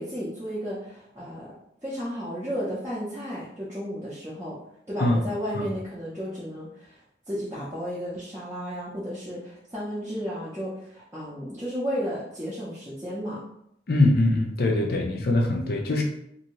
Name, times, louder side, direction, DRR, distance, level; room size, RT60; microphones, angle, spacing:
voice 1, 0.0-1.5 1.8-4.6 4.9-7.0 7.3-13.4, equal, 15° right, -10 dB, 0.6 m, -33 dB
voice 2, 13.9-16.0, left 2 dB, 55° left, 2 dB, 0.5 m, -22 dB
2.7 x 2.6 x 3.0 m, 0.75 s
head